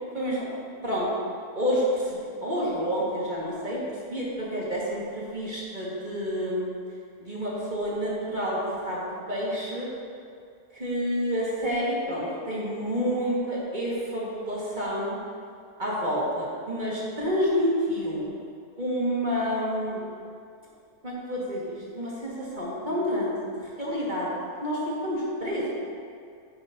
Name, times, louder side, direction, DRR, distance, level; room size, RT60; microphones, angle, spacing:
voice 1, 0.1-0.5 0.8-1.1 1.5-3.8 4.1-6.7 7.2-9.0 9.3-9.9 10.7-15.2 15.8-18.3 18.8-20.0 21.0-23.3 23.8-24.3 24.6-25.7, equal, 30° right, -6 dB, 2.0 m, -28 dB
10.0 x 8.7 x 2.8 m, 2.4 s
omnidirectional pair, 1.6 m